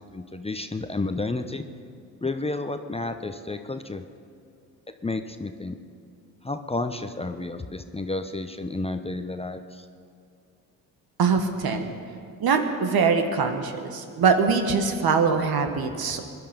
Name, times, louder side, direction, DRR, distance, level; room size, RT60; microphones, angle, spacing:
voice 1, 0.1-1.6 2.2-4.0 5.0-5.8 6.4-9.9, left 2 dB, 15° left, 8 dB, 0.9 m, -31 dB
voice 2, 11.2-11.9 12.4-16.3, right 5 dB, 55° right, 6 dB, 1.7 m, -23 dB
21.5 x 11.5 x 5.3 m, 2.4 s
hypercardioid pair, 55°, 43 cm